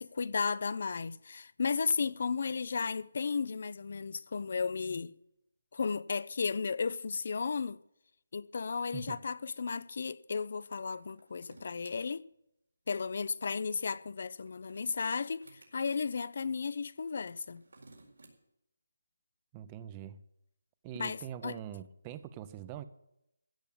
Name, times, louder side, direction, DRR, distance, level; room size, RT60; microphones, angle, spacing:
voice 1, 0.0-5.1 5.7-7.8 8.3-12.3 12.9-17.6 20.9-21.6, left 5 dB, 50° left, 0.5 m, -34 dB
sound 1, 11.0-12.0 14.2-15.7 17.3-18.3, right 2 dB, 90° right, 4.4 m, -58 dB
voice 2, 19.5-20.2 20.8-22.8, right 10 dB, 15° right, 0.6 m, -43 dB
15.5 x 7.1 x 8.6 m
hypercardioid pair, 170°, 0 cm